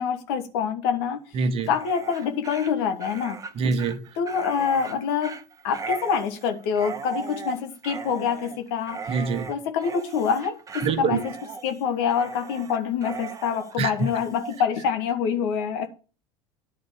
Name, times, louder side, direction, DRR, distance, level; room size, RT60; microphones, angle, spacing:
voice 1, 0.0-1.2 1.7-3.7 4.2-5.4 5.6-9.0 9.5-11.3 11.6-15.9, left 7 dB, 70° left, 1.4 m, -26 dB
voice 2, 1.3-1.7 3.6-4.1 9.1-9.5 10.8-11.2 13.8-13.9, right 5 dB, 45° right, 1.1 m, -25 dB
Dog, 1.6-14.6, right 5 dB, 25° right, 1.0 m, -38 dB
10.0 x 3.9 x 7.0 m
hypercardioid pair, 80°, 14 cm